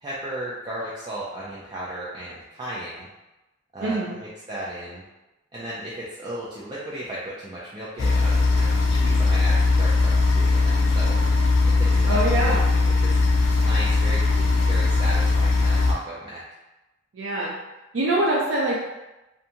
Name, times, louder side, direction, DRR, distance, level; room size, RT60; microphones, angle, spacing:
voice 1, 0.0-3.1 3.7-5.0 5.5-11.2 11.6-13.2 13.5-16.4, right 1 dB, 25° right, -7 dB, 0.3 m, -35 dB
voice 2, 3.8-4.2 12.1-12.6 17.2-17.5 17.9-18.8, right 1 dB, 90° right, -5 dB, 0.5 m, -24 dB
sound 1, 8.0-15.9, left 3 dB, 90° left, 0.4 m, -20 dB
2.5 x 2.2 x 2.8 m, 1.0 s
head